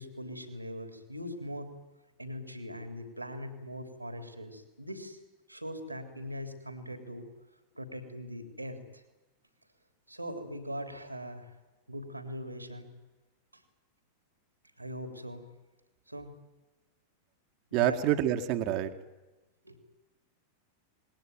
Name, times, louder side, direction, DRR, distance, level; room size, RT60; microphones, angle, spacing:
voice 1, 0.0-1.8 2.2-5.2 5.5-7.3 7.7-9.0 10.1-11.6 11.9-12.9 13.5-13.6 14.8-15.4 16.1-16.4 17.7-18.0 19.6-19.8, equal, 85° right, 7 dB, 3.5 m, -41 dB
voice 2, 17.7-18.9, right 12 dB, 40° right, 7 dB, 1.8 m, -27 dB
27.0 x 21.0 x 9.3 m, 1.1 s
figure-of-eight pair, 90°, 0 cm